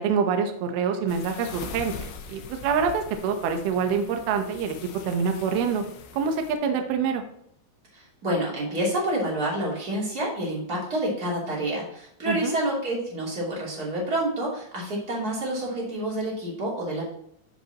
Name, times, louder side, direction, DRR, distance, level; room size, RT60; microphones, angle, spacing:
voice 1, 0.0-4.8 5.0-5.8 6.1-7.2 12.3-12.6, right 6 dB, 75° right, 5 dB, 2.3 m, -26 dB
sound 1, 1.1-6.5, left 6 dB, 75° left, 3.1 m, -42 dB
voice 2, 7.9-17.0, right 1 dB, 25° right, -4 dB, 2.3 m, -28 dB
13.0 x 5.3 x 3.0 m, 0.71 s
omnidirectional pair, 5.8 m